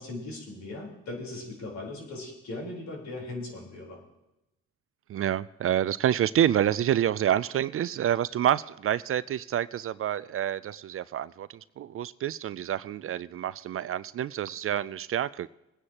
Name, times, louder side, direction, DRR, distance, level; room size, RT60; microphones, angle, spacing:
voice 1, 0.0-4.0, left 2 dB, 65° left, 4.1 m, -38 dB
voice 2, 5.1-11.5 11.8-15.5, right 11 dB, 45° right, 0.4 m, -28 dB
21.5 x 9.7 x 2.9 m
cardioid pair, 90°, 30 cm